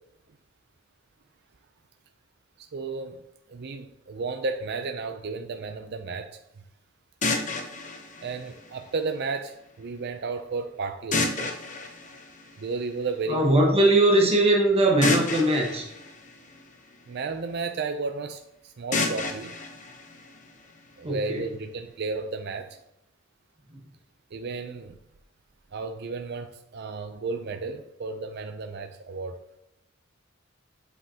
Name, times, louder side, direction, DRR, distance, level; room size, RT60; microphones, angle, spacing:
voice 1, 2.6-3.2 3.5-6.4 8.2-11.5 12.6-13.6 17.1-19.5 21.0-22.7 24.3-25.0 25.7-29.4, right 4 dB, 55° right, 6 dB, 0.5 m, -33 dB
sound 1, 7.2-9.2 11.1-13.1 15.0-17.2 18.9-20.9, left 3 dB, 40° left, 0.9 m, -31 dB
voice 2, 13.3-15.9 21.0-21.4, right 1 dB, 30° right, 0 dB, 1.2 m, -20 dB
8.2 x 5.5 x 2.9 m, 0.84 s
head